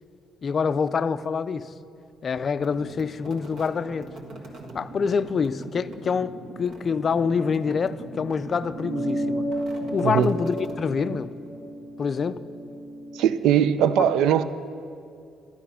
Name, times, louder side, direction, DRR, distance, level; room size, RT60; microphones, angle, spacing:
voice 1, 0.4-1.7 2.2-4.1 4.7-9.4 9.9-11.3 12.0-12.4 14.0-14.1, left 5 dB, 30° left, 0.3 m, -26 dB
sound 1, 2.5-11.5, right 2 dB, 65° right, 1.6 m, -41 dB
sound 2, 8.7-13.5, right 1 dB, 45° right, 2.2 m, -32 dB
voice 2, 13.1-14.4, right 9 dB, 85° right, 0.5 m, -20 dB
13.0 x 11.5 x 5.6 m
cardioid pair, 160°, 0 cm